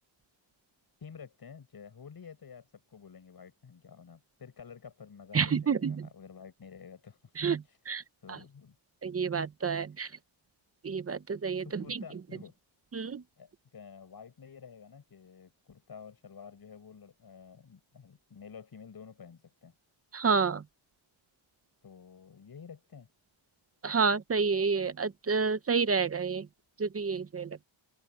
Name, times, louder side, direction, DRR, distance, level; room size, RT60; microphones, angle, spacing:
voice 1, 1.0-7.3 7.6-7.8 8.2-8.8 10.0-10.1 11.6-12.6 13.4-19.7 21.8-23.1, left 6 dB, 45° left, 7.0 m, -50 dB
voice 2, 5.3-6.1 7.4-8.0 8.3-8.4 9.0-10.1 10.8-12.0 12.9-13.2 20.1-20.6 23.8-26.5 26.8-27.6, right 5 dB, 30° right, 0.6 m, -29 dB
wide cardioid pair, 170°, 49 cm